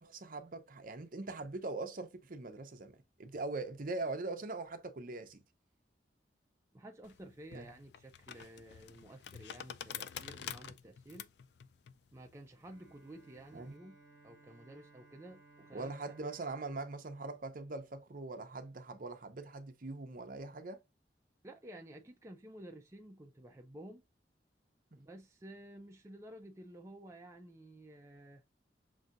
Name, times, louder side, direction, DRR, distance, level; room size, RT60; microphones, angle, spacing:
voice 1, 0.0-5.4 7.5-7.6 13.5-13.7 15.7-20.8, right 3 dB, 50° right, 0.7 m, -42 dB
voice 2, 6.7-11.3 12.1-14.0 14.2-16.1 21.4-24.0 24.9-28.4, right 1 dB, 15° right, 0.4 m, -52 dB
sound 1, 7.0-13.7, left 9 dB, 65° left, 0.4 m, -48 dB
Bowed string instrument, 12.6-18.5, right 3 dB, 85° left, 2.0 m, -63 dB
6.3 x 2.7 x 2.5 m
head